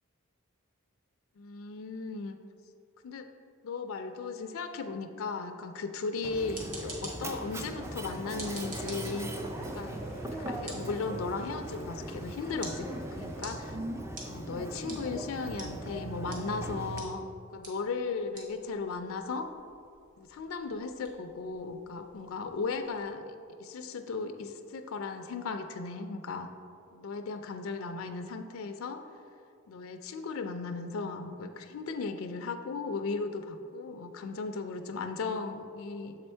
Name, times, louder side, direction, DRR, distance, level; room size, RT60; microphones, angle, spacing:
voice 1, 1.4-2.4 3.0-3.3 3.6-9.3 9.7-10.0 10.5-13.8 14.2-19.5 20.2-23.3 23.6-26.5 26.9-29.0 29.7-36.2, left 4 dB, 65° left, 7 dB, 0.4 m, -36 dB
Mechanisms, 6.2-17.0, right 1 dB, 10° right, 0.3 m, -39 dB
sound 1, 6.3-23.1, right 1 dB, 40° right, 1.3 m, -50 dB
sound 2, 7.3-13.5, equal, 60° right, 1.4 m, -48 dB
6.9 x 4.4 x 4.4 m, 2.4 s
head